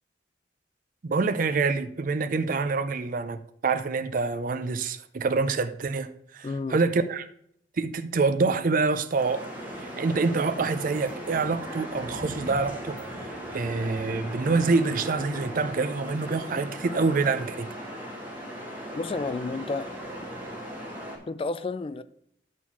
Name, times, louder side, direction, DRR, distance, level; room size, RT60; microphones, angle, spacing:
voice 1, 1.0-7.3 7.8-9.5 9.8-17.7, right 4 dB, 45° right, 0.5 m, -26 dB
voice 2, 6.4-6.8 19.0-19.9 21.3-22.0, left 3 dB, 30° left, 0.3 m, -31 dB
sound 1, 9.1-21.2, equal, 10° right, 1.9 m, -38 dB
9.2 x 4.2 x 5.8 m
head